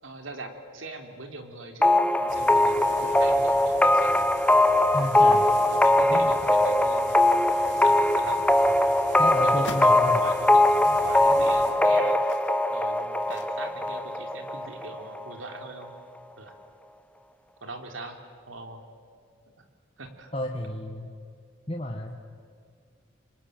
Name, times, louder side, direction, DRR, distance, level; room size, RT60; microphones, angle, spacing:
voice 1, 0.0-4.2 5.2-7.1 7.7-8.4 9.4-12.2 12.7-15.9 16.4-16.5 17.6-18.2 18.5-18.8 20.0-20.3, right 2 dB, 85° right, 5 dB, 3.4 m, -40 dB
sound 1, 1.8-15.3, left 1 dB, 5° left, 0.7 m, -21 dB
sound 2, 2.3-11.7, right 2 dB, 65° right, 4.6 m, -44 dB
voice 2, 4.9-5.4 6.1-6.3 9.2-10.2 20.3-21.1 21.7-22.2, left 1 dB, 30° left, 1 dB, 1.6 m, -31 dB
sound 3, 8.5-10.0 10.6-10.7 11.3-13.9 14.3-14.4, left 3 dB, 65° left, 2.8 m, -45 dB
25.5 x 25.5 x 9.3 m, 2.2 s
head